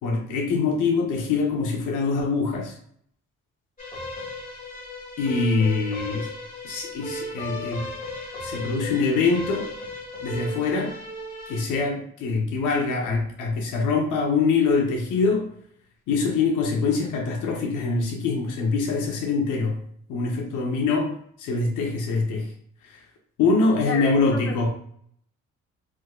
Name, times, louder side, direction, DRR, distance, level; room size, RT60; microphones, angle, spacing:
voice 1, 0.0-2.7 5.2-6.3 6.6-7.8 8.4-9.7 10.2-10.9 11.5-15.5 16.1-19.8 20.1-21.1 21.4-22.5 22.8-23.0 23.4-24.7, left 4 dB, 85° left, 0 dB, 0.7 m, -24 dB
two worlds away, 3.8-11.6, left 1 dB, 25° left, 1.5 m, -35 dB
voice 2, 23.8-24.7, left 4 dB, 50° left, 1 dB, 0.9 m, -31 dB
3.6 x 2.7 x 2.2 m, 0.65 s
cardioid pair, 90°, 30 cm